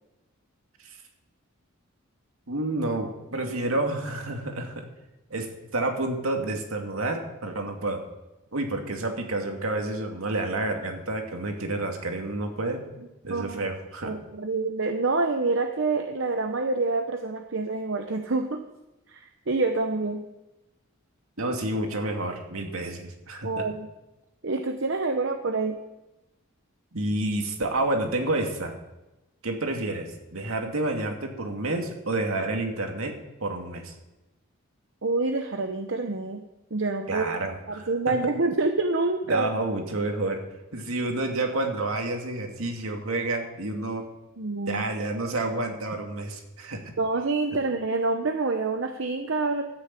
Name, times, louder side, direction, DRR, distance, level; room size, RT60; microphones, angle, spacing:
voice 1, 2.5-4.9 5.3-8.0 8.5-12.8 13.2-14.1 21.4-23.6 26.9-28.7 29.4-33.1 33.4-33.9 37.1-38.1 39.3-40.4 40.7-44.0 44.7-46.9, right 2 dB, 75° right, 3 dB, 2.2 m, -29 dB
voice 2, 13.3-13.6 14.0-18.6 19.1-20.3 23.4-23.9 24.4-25.8 35.0-36.4 36.7-37.3 37.7-39.5 44.4-44.8 47.0-49.6, right 3 dB, 55° right, 6 dB, 0.8 m, -27 dB
13.0 x 6.6 x 8.2 m, 1.0 s
head